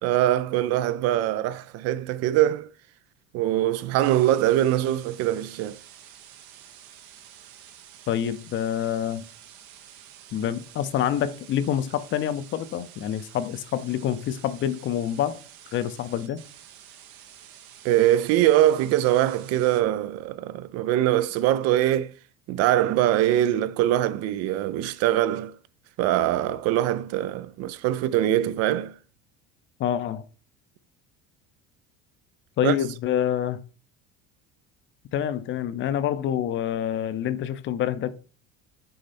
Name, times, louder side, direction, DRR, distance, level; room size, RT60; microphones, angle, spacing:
voice 1, 0.0-2.7 3.3-5.8 17.8-22.1 22.5-25.5 26.0-28.9 32.6-32.7, right 13 dB, 55° right, 0.4 m, -23 dB
sound 1, 4.0-19.8, right 10 dB, 70° right, 1.0 m, -49 dB
voice 2, 8.1-9.3 10.3-15.4 15.7-16.4 29.8-30.2 32.6-33.6 35.1-38.1, left 10 dB, 40° left, 0.5 m, -27 dB
6.5 x 4.3 x 4.2 m
cardioid pair, 135°, 30 cm